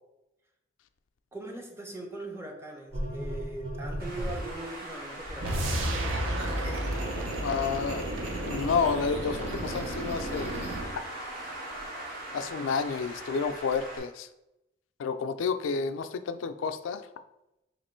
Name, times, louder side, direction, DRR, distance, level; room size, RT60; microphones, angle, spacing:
voice 1, 1.3-5.7, right 2 dB, 15° right, 2 dB, 0.5 m, -40 dB
sound 1, 2.9-4.5 5.2-10.8, equal, 30° right, 1.0 m, -38 dB
Traffic noise roadway noise, 4.0-14.0, right 1 dB, 50° right, 1.2 m, -42 dB
sound 2, 5.4-11.0, right 1 dB, 85° right, 0.6 m, -32 dB
voice 2, 7.4-8.1 8.4-10.7 12.3-14.3 15.0-17.0, left 5 dB, 80° left, 10 dB, 0.3 m, -30 dB
3.0 x 2.9 x 4.3 m, 0.90 s
head